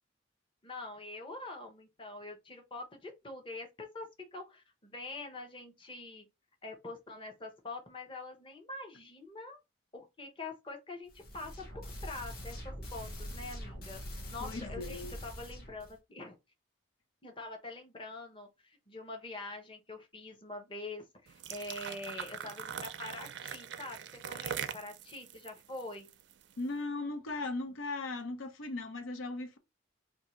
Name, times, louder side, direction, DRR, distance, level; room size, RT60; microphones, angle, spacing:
voice 1, 0.6-6.3 6.6-9.6 9.9-16.4 17.2-26.1, left 2 dB, 25° left, 0.8 m, -45 dB
sound 1, 11.1-16.0, equal, 50° left, 1.1 m, -44 dB
voice 2, 14.4-15.1 26.6-29.6, left 2 dB, 85° left, 0.6 m, -38 dB
sound 2, 21.3-26.5, right 8 dB, 60° right, 0.4 m, -42 dB
2.7 x 2.7 x 4.2 m
head